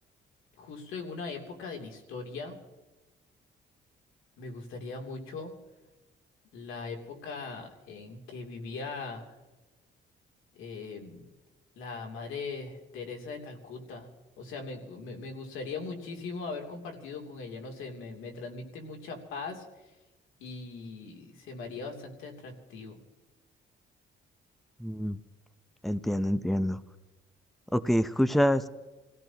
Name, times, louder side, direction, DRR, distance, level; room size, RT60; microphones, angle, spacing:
voice 1, 0.6-2.6 4.4-5.5 6.5-9.3 10.5-11.2 11.8-14.1 14.4-19.6 20.4-23.0, left 4 dB, 90° left, 2 dB, 3.0 m, -40 dB
voice 2, 24.8-25.2 25.8-26.8 27.7-28.7, equal, ahead, 13 dB, 0.7 m, -26 dB
28.0 x 16.5 x 2.9 m, 1.1 s
cardioid pair, 90°, 20 cm